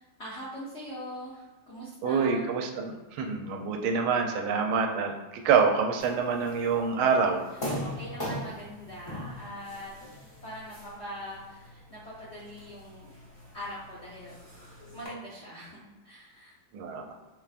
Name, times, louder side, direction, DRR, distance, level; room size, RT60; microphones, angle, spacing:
voice 1, 0.0-2.5 7.5-9.9 10.4-13.1 13.5-14.4 14.9-16.6, equal, 70° left, -7 dB, 0.6 m, -42 dB
voice 2, 2.0-7.4 16.7-17.1, right 5 dB, 80° right, 4 dB, 1.4 m, -26 dB
sound 1, 6.0-15.1, equal, 25° left, 0.8 m, -41 dB
4.2 x 3.4 x 2.4 m, 1.2 s
omnidirectional pair, 2.3 m